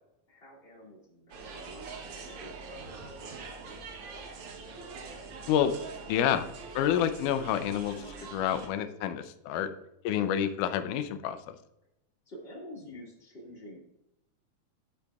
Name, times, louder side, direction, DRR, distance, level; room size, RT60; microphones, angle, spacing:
voice 1, 0.3-4.0 12.2-13.8, equal, 20° left, -4 dB, 1.7 m, -49 dB
sound 1, 1.3-8.7, right 4 dB, 85° right, 1.2 m, -44 dB
voice 2, 6.1-6.5 6.8-9.7 10.0-11.6, left 9 dB, 85° left, 9 dB, 1.8 m, -28 dB
11.5 x 8.2 x 2.4 m, 0.85 s
omnidirectional pair, 4.3 m